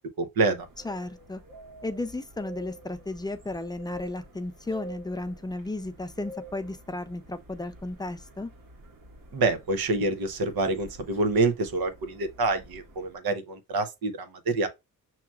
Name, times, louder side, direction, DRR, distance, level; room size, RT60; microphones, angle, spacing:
voice 1, 0.2-0.7 9.3-14.7, right 3 dB, 90° right, 0.9 m, -27 dB
sound 1, 0.6-13.2, right 1 dB, 65° right, 1.5 m, -48 dB
voice 2, 0.8-1.4 1.8-8.5, left 2 dB, 10° left, 0.4 m, -34 dB
5.8 x 2.8 x 2.3 m
wide cardioid pair, 115°, 35 cm